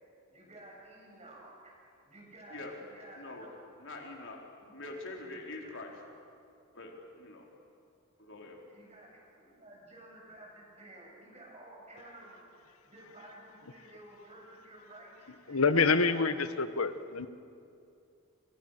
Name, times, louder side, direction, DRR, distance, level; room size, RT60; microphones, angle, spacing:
voice 1, 0.3-3.5 4.0-4.1 4.6-4.8 5.6-5.7 8.5-16.4, right 1 dB, 30° right, -2 dB, 7.6 m, -53 dB
voice 2, 3.2-3.5 3.8-4.4 4.7-5.9 6.7-7.5 8.2-8.6, left 2 dB, 60° left, 0 dB, 4.4 m, -44 dB
voice 3, 15.5-17.3, left 4 dB, 75° left, 11 dB, 1.3 m, -27 dB
29.5 x 27.5 x 6.7 m, 2.5 s
head